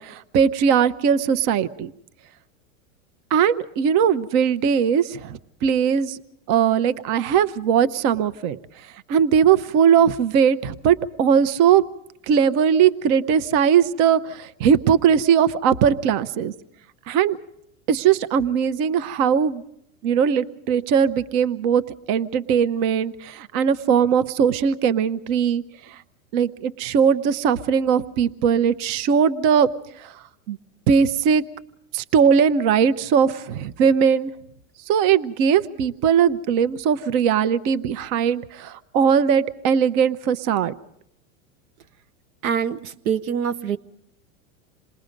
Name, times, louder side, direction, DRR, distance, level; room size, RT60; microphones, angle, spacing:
voice 1, 0.0-1.9 3.3-6.2 6.5-8.6 9.1-11.8 12.3-16.5 17.1-17.4 17.9-19.6 20.0-21.8 22.1-25.6 26.3-29.7 30.0-30.1 30.5-30.6 30.9-31.4 31.9-34.3 34.9-40.8, right 7 dB, 50° right, 13 dB, 0.9 m, -19 dB
voice 2, 42.4-43.8, right 7 dB, 80° right, 10 dB, 0.9 m, -25 dB
27.5 x 19.5 x 5.2 m, 0.74 s
hypercardioid pair, 115°, 42 cm